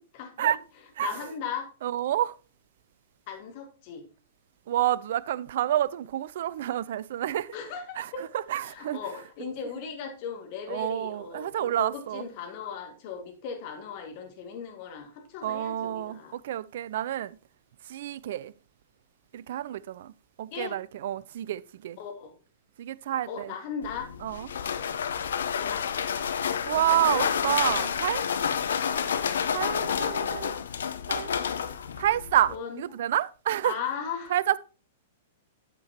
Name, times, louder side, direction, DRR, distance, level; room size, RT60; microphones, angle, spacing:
voice 1, 1.0-1.7 3.3-4.0 7.5-8.2 8.7-16.4 20.5-20.8 22.0-22.3 23.3-24.1 25.5-26.1 28.8-29.0 32.5-32.8 33.6-34.3, left 6 dB, 45° left, 2.1 m, -37 dB
voice 2, 1.8-2.3 4.7-7.5 8.0-9.0 10.7-12.2 15.4-17.4 17.9-18.5 19.3-20.1 20.4-22.0 22.8-23.5 24.2-24.5 26.7-28.2 29.5-30.5 31.1-31.3 32.0-33.8 34.3-34.6, right 12 dB, 60° right, 0.4 m, -29 dB
sound 1, 23.8-32.6, left 7 dB, 70° left, 0.6 m, -29 dB
9.7 x 7.5 x 2.9 m
figure-of-eight pair, 105°, 0 cm